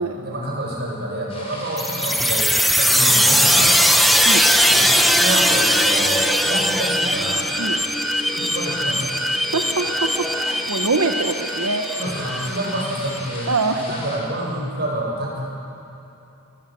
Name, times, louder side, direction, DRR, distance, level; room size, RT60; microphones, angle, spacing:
voice 1, 0.2-3.9 4.6-7.4 8.3-9.2 12.0-13.5 13.8-15.4, right 1 dB, 45° right, -2 dB, 7.3 m, -28 dB
sound 1, 1.3-14.2, left 1 dB, 25° left, 6.2 m, -37 dB
sound 2, 1.8-13.2, equal, ahead, 1.1 m, -19 dB
voice 2, 9.5-12.0 13.5-13.8, right 3 dB, 85° right, 3 dB, 1.3 m, -24 dB
25.5 x 23.5 x 7.8 m, 2.9 s
head